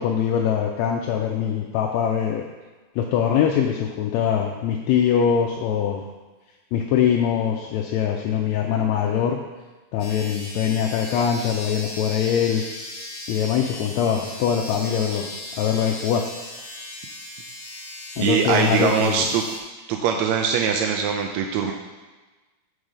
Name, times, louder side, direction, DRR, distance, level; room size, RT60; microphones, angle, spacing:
voice 1, 0.0-2.4 3.0-6.1 6.7-9.4 9.9-12.6 13.3-15.3 15.6-16.3 18.2-19.3, left 8 dB, 80° left, 1 dB, 1.7 m, -22 dB
sound 1, 10.0-19.6, left 1 dB, 60° left, 2.4 m, -37 dB
voice 2, 18.2-19.4 19.9-21.7, right 7 dB, 80° right, 2 dB, 1.7 m, -22 dB
6.3 x 5.5 x 5.1 m, 1.2 s
omnidirectional pair, 3.4 m